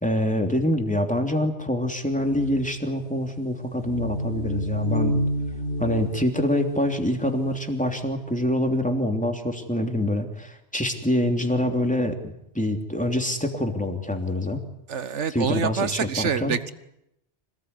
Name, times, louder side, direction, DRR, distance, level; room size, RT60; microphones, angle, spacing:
voice 1, 0.0-5.2 5.8-14.6 15.3-16.5, left 1 dB, 5° left, 4 dB, 3.1 m, -25 dB
sound 1, 2.2-7.4, equal, 75° left, 4.3 m, -29 dB
voice 2, 14.9-16.7, right 6 dB, 80° right, 13 dB, 1.6 m, -26 dB
26.0 x 19.0 x 9.7 m, 0.81 s
omnidirectional pair, 1.2 m